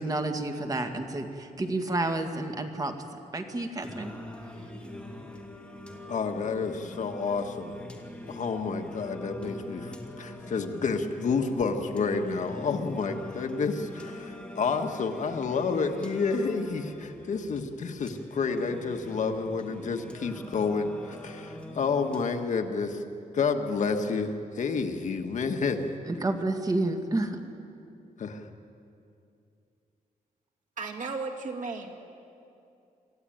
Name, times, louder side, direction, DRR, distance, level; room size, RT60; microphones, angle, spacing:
voice 1, 0.0-2.9 3.3-4.1 26.1-27.4, right 2 dB, 25° right, 5 dB, 1.9 m, -30 dB
Singing, 3.8-22.8, left 1 dB, 5° left, 2.2 m, -43 dB
voice 2, 6.1-7.8 8.3-23.0 23.3-25.9 28.2-28.5, left 4 dB, 60° left, 5 dB, 1.5 m, -30 dB
voice 3, 30.8-32.0, right 4 dB, 60° right, 1 dB, 2.5 m, -35 dB
26.0 x 15.0 x 9.2 m, 2.6 s
wide cardioid pair, 140°, 15 cm